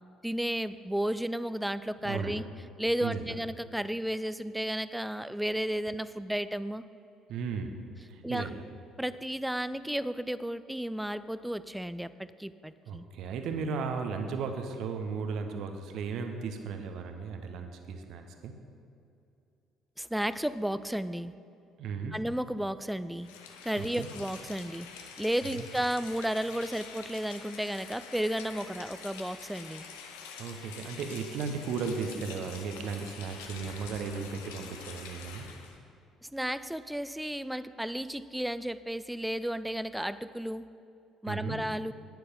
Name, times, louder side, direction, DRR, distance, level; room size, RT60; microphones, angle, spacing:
voice 1, 0.2-2.5 2.8-6.8 8.2-8.5 9.0-13.0 20.0-21.3 22.1-23.3 23.6-29.9 36.2-40.7 41.2-41.9, right 1 dB, 5° right, 14 dB, 0.4 m, -33 dB
voice 2, 2.0-2.4 3.0-3.4 7.3-7.8 8.1-8.6 12.9-18.5 21.8-22.1 23.8-24.1 25.5-25.6 30.4-35.5 41.3-41.6, right 5 dB, 55° right, 6 dB, 1.0 m, -35 dB
Rain, 23.2-35.8, left 6 dB, 70° left, 0.9 m, -46 dB
11.0 x 9.8 x 5.3 m, 2.6 s
figure-of-eight pair, 50°, 0 cm